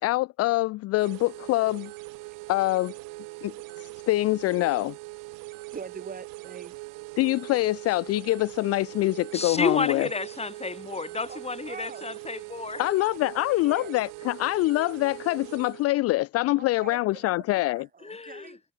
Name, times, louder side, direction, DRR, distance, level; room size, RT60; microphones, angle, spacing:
voice 1, 0.0-1.9 2.5-2.9 3.4-3.5 3.8-4.9 7.2-10.1 12.8-17.9, left 18 dB, 45° left, 0.4 m, -25 dB
sound 1, 0.9-15.9, right 24 dB, 65° right, 1.6 m, -41 dB
voice 2, 5.7-6.7 11.3-11.4 11.7-12.1 12.8-13.9 16.6-18.6, right 5 dB, 25° right, 1.4 m, -44 dB
voice 3, 9.3-12.8 18.0-18.6, left 4 dB, 15° left, 2.1 m, -31 dB
hypercardioid pair, 80°, 35 cm